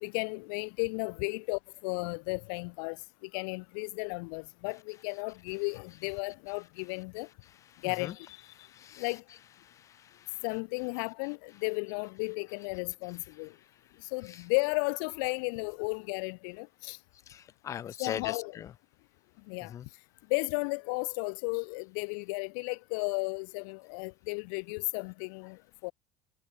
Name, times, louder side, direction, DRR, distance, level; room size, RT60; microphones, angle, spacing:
voice 1, 0.0-3.0 3.3-7.3 7.8-8.4 9.0-9.2 10.4-13.5 14.1-17.0 18.0-18.6 19.5-19.7 20.3-25.9, left 35 dB, 75° left, 2.5 m, -34 dB
voice 2, 7.7-8.1 8.6-9.0 9.6-10.4 14.3-14.4 17.3-18.7 19.7-19.9, left 10 dB, 25° left, 2.4 m, -41 dB
cardioid pair, 175°, 11 cm